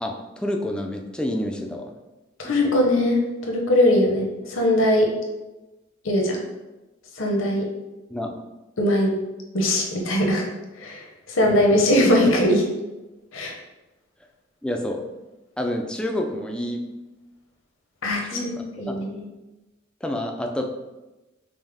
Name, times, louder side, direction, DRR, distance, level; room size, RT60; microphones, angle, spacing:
voice 1, 0.0-1.9 2.4-2.7 8.1-8.3 11.7-11.8 12.2-12.3 14.6-15.0 15.6-16.8 18.2-18.5 18.9-19.0 20.0-20.6, left 1 dB, 5° left, 2 dB, 0.3 m, -28 dB
voice 2, 2.4-3.2 3.5-5.1 6.0-6.4 7.2-7.7 8.8-9.1 9.5-10.4 10.8-12.6 13.3-13.5 18.0-18.5 18.8-19.2, left 1 dB, 70° left, 0 dB, 0.8 m, -20 dB
5.3 x 2.1 x 3.4 m, 1.1 s
head